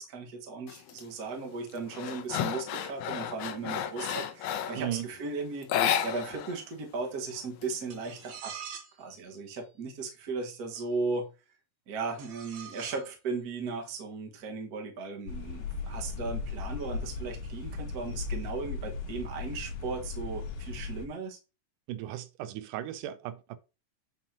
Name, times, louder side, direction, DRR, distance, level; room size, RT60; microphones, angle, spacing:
voice 1, 0.0-8.5 9.0-11.3 11.9-21.4, right 4 dB, 45° right, 1.3 m, -36 dB
sound 1, 0.7-1.0 1.4-4.9 5.6-6.6 6.8-6.9 7.3-8.3, left 9 dB, 75° left, 2.0 m, -32 dB
voice 2, 4.8-5.1 21.9-23.6, right 12 dB, 80° right, 2.1 m, -36 dB
sound 2, 7.9-9.0 10.8-10.9 12.2-13.1, right 7 dB, 60° right, 2.4 m, -44 dB
sound 3, 15.3-21.1, left 4 dB, 90° left, 2.9 m, -37 dB
8.2 x 5.9 x 2.8 m
omnidirectional pair, 3.8 m